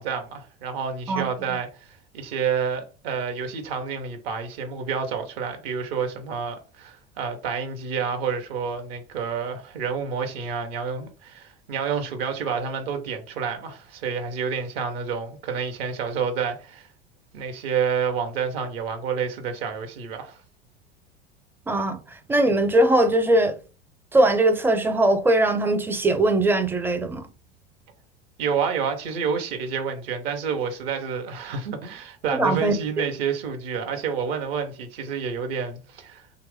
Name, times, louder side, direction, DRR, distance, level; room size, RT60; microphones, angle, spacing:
voice 1, 0.0-16.9 17.3-20.4 28.4-36.3, right 6 dB, 60° right, 1.0 m, -29 dB
voice 2, 21.7-22.0 22.3-23.6 24.1-27.3 32.3-32.7, right 1 dB, 5° right, 0.4 m, -20 dB
3.0 x 2.4 x 3.5 m
figure-of-eight pair, 75°, 33 cm